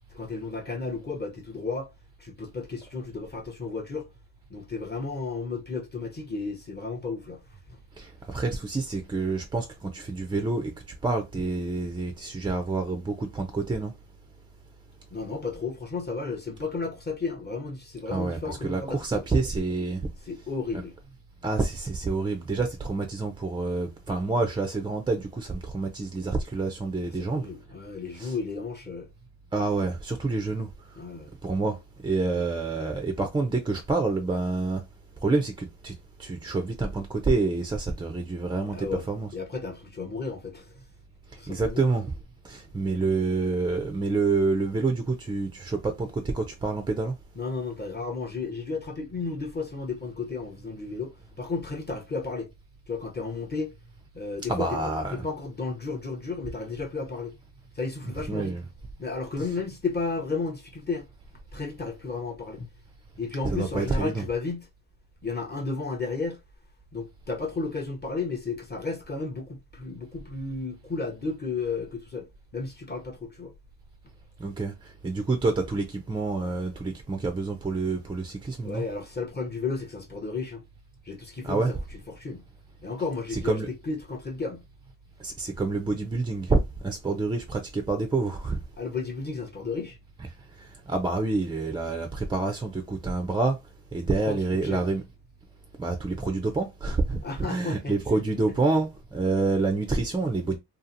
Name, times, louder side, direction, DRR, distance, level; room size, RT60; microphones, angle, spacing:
voice 1, 0.1-1.9 2.2-4.1 4.5-7.4 7.7-7.8 15.1-19.2 20.3-20.9 27.2-29.1 31.0-31.3 32.3-32.5 38.6-39.1 39.3-40.8 41.4-41.8 42.8-43.0 47.4-52.5 52.9-53.7 54.1-57.3 57.7-58.5 59.0-61.0 61.5-62.7 63.2-64.7 65.2-66.4 66.9-73.5 78.6-80.6 81.1-82.4 82.8-84.6 88.8-90.0 94.1-94.8 97.2-97.9 98.4-98.5, left 4 dB, 25° left, 0.6 m, -33 dB
voice 2, 8.0-10.7 11.0-13.9 18.1-20.0 20.7-20.8 21.4-27.5 28.1-28.4 29.5-30.7 31.4-34.8 35.2-35.9 36.2-39.3 41.5-42.1 42.4-47.1 54.5-55.3 58.0-58.7 59.4-59.6 63.4-64.3 74.4-78.8 81.4-81.7 83.3-83.7 85.2-88.6 90.6-93.6 93.9-95.0 95.8-97.2 97.5-100.6, right 3 dB, 10° right, 0.3 m, -28 dB
2.7 x 2.4 x 2.5 m
cardioid pair, 85°, 44 cm